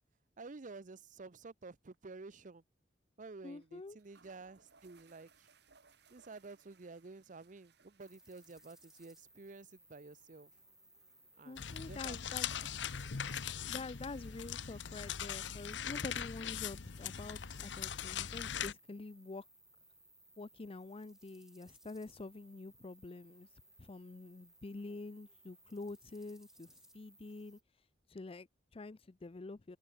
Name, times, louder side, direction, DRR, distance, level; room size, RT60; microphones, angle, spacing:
voice 1, 0.4-2.6 3.2-5.5 6.1-10.5 11.4-12.3 12.6-12.7 13.0-13.2 24.8-25.0, right 3 dB, 45° right, 0.7 m, -52 dB
sound 1, 1.9-2.2 2.4-2.5 3.6-3.7 4.0-13.4, right 5 dB, 65° right, 7.0 m, -70 dB
voice 2, 3.4-4.0 11.4-12.5 13.7-19.4 20.4-23.5 23.8-27.6 28.1-29.8, left 3 dB, 30° left, 0.5 m, -47 dB
sound 2, 8.0-27.6, right 1 dB, 5° right, 1.5 m, -64 dB
sound 3, 11.6-18.7, left 8 dB, 75° left, 0.9 m, -41 dB
head